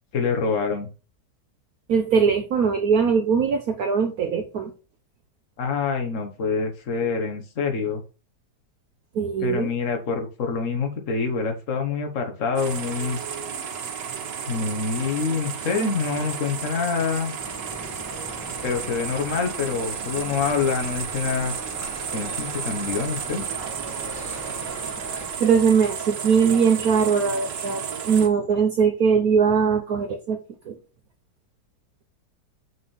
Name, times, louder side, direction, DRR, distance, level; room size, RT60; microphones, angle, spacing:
voice 1, 0.1-0.9 5.6-8.0 9.4-13.2 14.5-17.3 18.6-21.5 22.1-23.4, left 5 dB, 50° left, 4 dB, 1.7 m, -26 dB
voice 2, 1.9-4.7 9.1-9.7 25.4-30.4 30.7-30.8, right 6 dB, 60° right, 5 dB, 1.3 m, -21 dB
sound 1, 12.6-28.3, right 7 dB, 80° right, 1.7 m, -33 dB
sound 2, 17.4-25.3, left 1 dB, 10° left, 1.1 m, -40 dB
6.1 x 4.7 x 5.4 m, 0.34 s
omnidirectional pair, 1.9 m